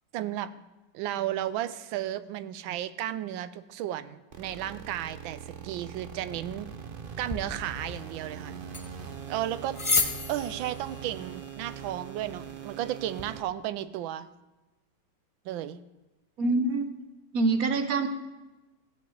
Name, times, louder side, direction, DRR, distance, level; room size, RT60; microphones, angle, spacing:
voice 1, 0.1-0.6 0.9-6.7 7.2-8.7 9.3-9.8 10.3-14.3 15.4-15.8, right 12 dB, 90° right, 14 dB, 1.4 m, -34 dB
sound 1, 4.3-13.4, right 7 dB, 70° right, 0.5 m, -42 dB
sound 2, 7.3-13.3, left 3 dB, 35° left, 0.5 m, -35 dB
voice 2, 16.4-16.9 17.3-18.1, right 3 dB, 55° right, 7 dB, 1.2 m, -25 dB
15.5 x 5.4 x 7.9 m, 1.1 s
omnidirectional pair, 2.1 m